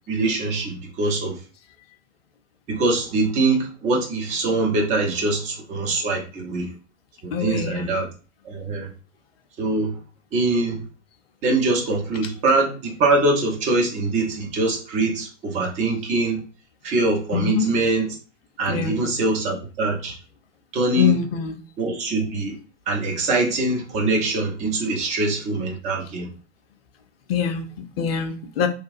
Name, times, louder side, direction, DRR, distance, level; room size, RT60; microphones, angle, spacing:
voice 1, 0.1-1.4 2.7-6.7 7.2-8.1 8.4-8.9 9.6-10.0 10.3-10.8 11.4-16.4 16.8-18.2 18.6-20.2 20.7-21.1 21.8-22.6 22.9-26.3, right 2 dB, 20° right, 0 dB, 0.6 m, -23 dB
voice 2, 7.3-7.9 17.3-17.7 18.7-19.0 21.0-21.6 27.3-28.7, left 7 dB, 55° left, 6 dB, 0.5 m, -24 dB
2.9 x 2.3 x 2.5 m, 0.36 s
figure-of-eight pair, 100°, 37 cm